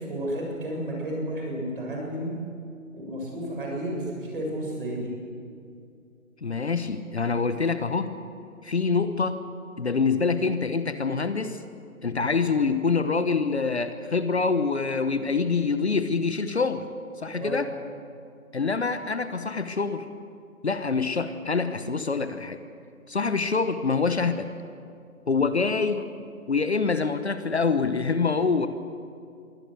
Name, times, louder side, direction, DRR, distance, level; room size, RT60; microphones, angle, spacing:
voice 1, 0.0-2.3 2.9-5.1 17.3-17.6, right 1 dB, 40° right, -1 dB, 7.2 m, -32 dB
voice 2, 6.4-8.1 8.6-9.4 9.8-11.6 12.0-16.9 17.2-17.7 18.5-20.1 20.6-22.6 23.1-24.5 25.3-26.0 26.5-28.7, left 4 dB, 50° left, 11 dB, 1.0 m, -25 dB
23.0 x 15.5 x 7.9 m, 2.4 s
hypercardioid pair, 175°, 43 cm